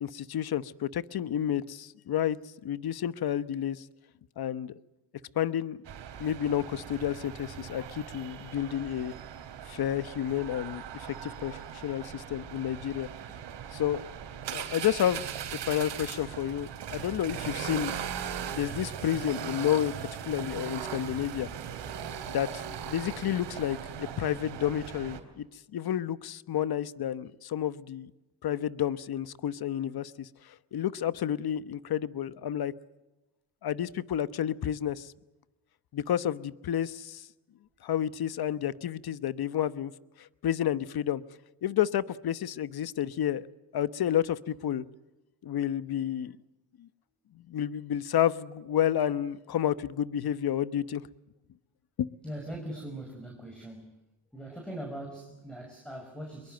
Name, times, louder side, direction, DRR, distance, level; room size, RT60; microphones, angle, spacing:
voice 1, 0.0-2.4 2.6-3.8 4.4-4.7 5.4-5.8 6.2-9.1 9.7-13.1 13.7-14.0 14.5-15.3 15.5-17.9 18.5-19.9 20.3-21.5 22.3-25.5 25.7-28.1 28.4-32.7 33.6-35.1 35.9-37.3 37.8-39.9 40.2-41.2 41.6-43.5 43.7-44.8 45.4-46.4 46.8-46.9 47.5-51.0 52.0-52.1, left 10 dB, 60° left, 1.1 m, -30 dB
sound 1, 5.8-25.2, right 8 dB, 75° right, 3.7 m, -39 dB
voice 2, 52.2-53.9 54.3-56.5, right 1 dB, ahead, 5.5 m, -41 dB
24.0 x 22.5 x 7.8 m
cardioid pair, 80°, 43 cm